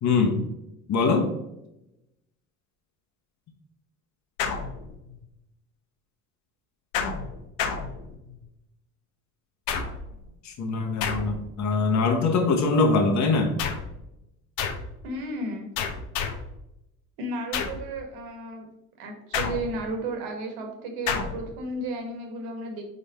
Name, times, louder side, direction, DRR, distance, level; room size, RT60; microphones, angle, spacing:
voice 1, 0.0-0.4 0.9-1.3 10.4-13.5, left 4 dB, 40° left, 3 dB, 1.3 m, -23 dB
sound 1, 4.4-5.2 6.9-8.5 9.7-10.2 11.0-11.6 13.6-14.0 14.6-15.0 15.8-16.6 17.5-17.9 19.3-20.0 21.1-21.5, left 6 dB, 65° left, 1.0 m, -30 dB
voice 2, 15.0-15.7 17.2-18.7 19.0-22.8, right 1 dB, 60° right, 4 dB, 1.7 m, -33 dB
5.3 x 4.8 x 4.2 m, 0.86 s
figure-of-eight pair, 60°, 41 cm